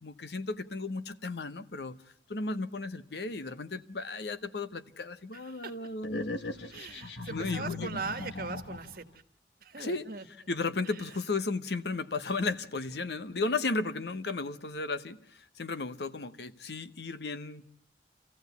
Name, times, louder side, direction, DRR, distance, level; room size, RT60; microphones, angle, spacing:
voice 1, 0.0-2.0 2.3-6.3 6.8-6.9 7.3-7.9 9.8-10.0 10.5-17.8, left 3 dB, 70° left, 1.0 m, -34 dB
voice 2, 5.3-5.9 6.7-9.2 9.6-10.3 10.8-11.2 13.6-13.8, right 4 dB, 55° right, 1.4 m, -41 dB
sound 1, 6.0-9.1, left 3 dB, 90° left, 1.6 m, -39 dB
27.0 x 15.5 x 8.2 m
head